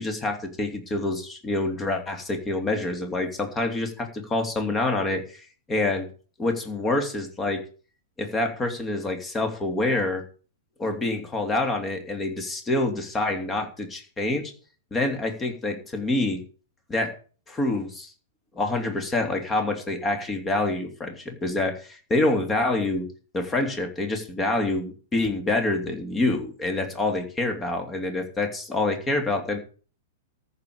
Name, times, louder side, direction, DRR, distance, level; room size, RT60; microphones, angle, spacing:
voice 1, 0.0-6.1 6.4-7.6 8.2-10.2 10.8-14.5 14.9-16.4 16.9-17.1 17.5-18.1 18.5-23.1 23.3-29.6, left 2 dB, 20° left, 5 dB, 3.2 m, -26 dB
14.0 x 5.2 x 8.9 m, 0.39 s
figure-of-eight pair, 105°, 0 cm